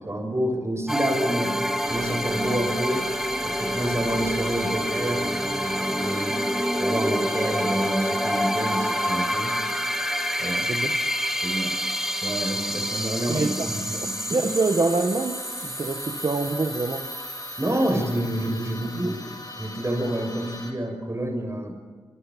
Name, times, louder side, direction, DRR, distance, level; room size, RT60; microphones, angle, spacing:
voice 1, 0.0-1.6 1.9-3.1 3.4-5.3 6.0-6.4 6.8-9.6 10.4-10.7 11.4-11.8 12.2-14.1 17.6-19.2 19.6-21.7, right 1 dB, 25° right, 4 dB, 6.4 m, -28 dB
sound 1, 0.9-19.3, equal, 5° right, 2.3 m, -28 dB
sound 2, 1.8-20.7, left 2 dB, 40° left, 7.6 m, -41 dB
voice 2, 10.6-11.0 13.3-13.7 13.9-17.1, right 3 dB, 50° right, 5 dB, 1.6 m, -26 dB
28.5 x 27.0 x 5.5 m, 1.5 s
wide cardioid pair, 85°, 10 cm